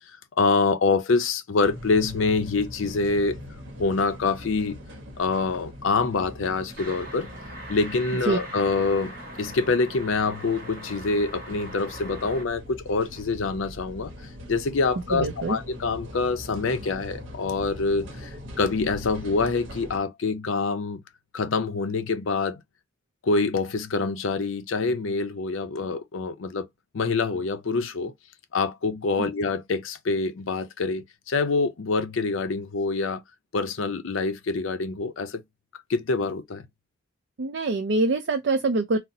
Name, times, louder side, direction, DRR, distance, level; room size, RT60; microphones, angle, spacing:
voice 1, 0.4-3.4 3.8-4.8 5.2-7.3 7.7-14.1 14.5-18.3 18.6-21.0 21.3-22.6 23.2-26.7 26.9-28.1 28.5-33.2 33.5-35.4 35.9-36.7, left 4 dB, 85° left, 0.5 m, -25 dB
sound 1, 1.6-20.0, left 1 dB, 80° right, 1.0 m, -42 dB
sound 2, 6.8-12.4, right 1 dB, 45° right, 1.0 m, -41 dB
voice 2, 15.1-15.6 29.2-29.3 37.4-39.0, right 3 dB, 60° right, 0.4 m, -24 dB
4.1 x 2.0 x 2.6 m
head